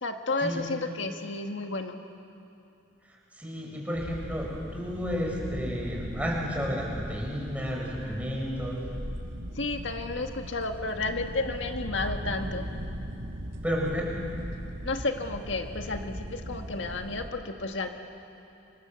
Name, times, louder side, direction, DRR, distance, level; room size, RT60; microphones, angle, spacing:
voice 1, 0.0-2.0 9.5-12.7 14.8-17.9, left 3 dB, 80° left, 4 dB, 1.7 m, -32 dB
voice 2, 3.1-8.9 13.6-14.1, equal, 10° right, -2 dB, 5.6 m, -32 dB
sound 1, 3.9-17.3, equal, 80° right, 3.2 m, -38 dB
29.0 x 26.0 x 7.8 m, 2.8 s
head